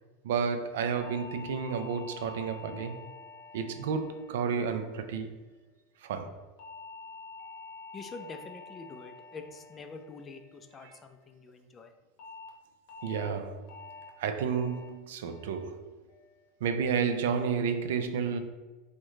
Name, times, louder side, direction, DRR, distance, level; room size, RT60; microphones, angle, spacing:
voice 1, 0.2-3.1 3.5-5.3 6.0-6.4 10.8-11.0 13.0-13.7 14.2-16.0 16.6-18.4, right 6 dB, 85° right, 0.3 m, -31 dB
sound 1, 1.0-5.4 6.6-11.0 12.2-12.5 12.9-13.3 13.7-14.1 14.5-14.9 15.3-15.7 16.1-16.5, left 4 dB, 55° left, 0.7 m, -48 dB
voice 2, 7.9-11.9, left 4 dB, 20° left, 0.3 m, -46 dB
3.6 x 2.1 x 3.1 m
supercardioid pair, 140°, 0 cm